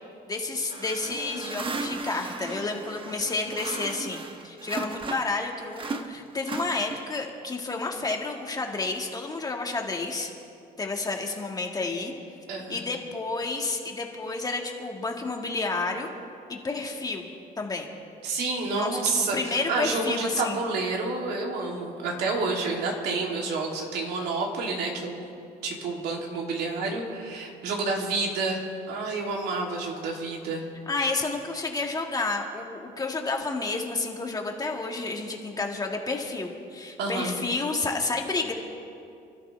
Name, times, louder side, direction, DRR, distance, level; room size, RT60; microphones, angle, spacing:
voice 1, 0.3-10.3 10.8-12.1 12.7-16.1 16.5-17.2 17.6-17.9 18.7-20.6 30.9-38.5, left 3 dB, 20° left, 1 dB, 2.1 m, -30 dB
garbage bin, 0.7-5.4 5.7-7.2, right 3 dB, 30° right, 1.2 m, -36 dB
voice 2, 12.5-12.8 18.2-25.3 25.6-30.6 37.0-37.3, right 3 dB, 80° right, -1 dB, 3.2 m, -29 dB
29.0 x 12.5 x 3.5 m, 2.5 s
cardioid pair, 110°, 17 cm